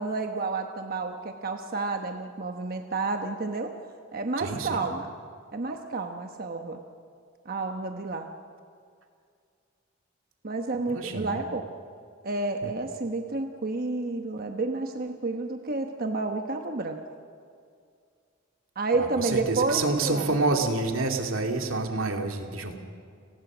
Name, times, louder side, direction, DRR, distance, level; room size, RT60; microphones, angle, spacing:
voice 1, 0.0-3.7 4.1-5.1 5.5-6.8 7.4-8.3 10.4-11.7 12.2-17.0 18.7-20.4, right 3 dB, 45° right, 5 dB, 1.1 m, -30 dB
voice 2, 4.4-4.8 10.9-11.4 12.6-12.7 19.0-22.8, right 3 dB, 85° right, 3 dB, 2.5 m, -28 dB
29.5 x 19.5 x 6.2 m, 2.3 s
head